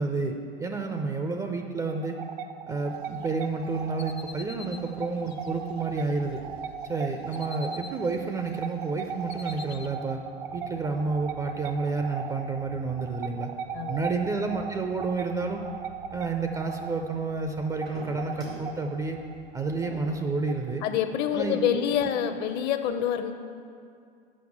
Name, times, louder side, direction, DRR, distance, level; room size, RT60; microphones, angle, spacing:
voice 1, 0.0-2.2 2.7-6.4 6.8-10.2 10.5-13.5 13.9-15.6 16.1-19.2 19.5-20.8 21.3-21.9, right 4 dB, 10° right, 4 dB, 0.4 m, -30 dB
sound 1, 1.9-21.3, right 7 dB, 60° right, 0.5 m, -39 dB
sound 2, 2.9-20.3, equal, 90° right, 2.5 m, -50 dB
sound 3, 3.1-6.4 6.8-8.6 8.8-9.9, left 6 dB, 85° left, 0.5 m, -47 dB
voice 2, 20.8-23.3, left 9 dB, 35° left, 9 dB, 0.6 m, -26 dB
7.2 x 5.7 x 7.2 m, 2.3 s
figure-of-eight pair, 85°, 30 cm